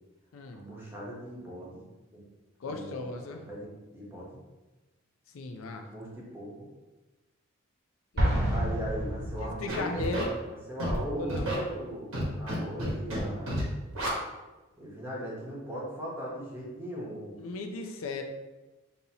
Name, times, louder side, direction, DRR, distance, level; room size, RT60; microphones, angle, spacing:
voice 1, 0.5-2.2 2.6-3.1 3.5-4.4 5.8-6.5 8.5-10.2 10.5-13.6 14.8-17.4, equal, 10° right, -5 dB, 0.9 m, -39 dB
voice 2, 2.6-3.4 5.3-5.9 8.1-8.5 9.4-10.3 11.2-11.5 17.4-18.2, left 3 dB, 75° left, 4 dB, 0.4 m, -37 dB
Explosion, 8.2-9.9, equal, 50° right, 1.0 m, -29 dB
Scratching (performance technique), 9.7-10.2 10.8-11.0 11.3-11.5 12.1-12.5 12.8-13.2 13.5-13.6 13.9-14.1, right 1 dB, 80° right, 1.2 m, -31 dB
5.3 x 2.7 x 2.8 m, 1.1 s
head